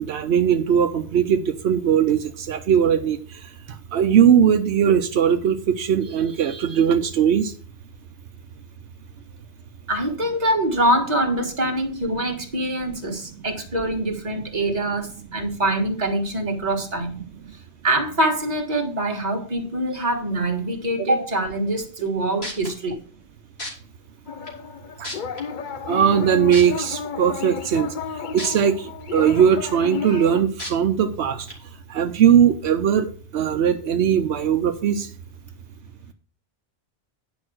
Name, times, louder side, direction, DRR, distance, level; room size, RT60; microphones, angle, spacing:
voice 1, 0.0-3.5 3.9-7.5 25.0-25.1 25.9-27.9 28.3-31.5 31.9-35.1, right 8 dB, 85° right, 7 dB, 1.0 m, -19 dB
voice 2, 9.9-17.2 17.8-23.0, right 1 dB, 40° right, 2 dB, 1.8 m, -24 dB
sound 1, 22.1-22.2 22.4-22.7 23.6-23.7 24.5-24.6 25.0-25.4 26.5-26.6 28.4-28.5 29.0-29.1 30.6-30.7 31.5-31.6, left 1 dB, 70° left, 3.1 m, -31 dB
sound 2, 24.3-30.4, left 6 dB, 50° left, 0.8 m, -32 dB
9.7 x 5.3 x 6.2 m, 0.42 s
omnidirectional pair, 1.1 m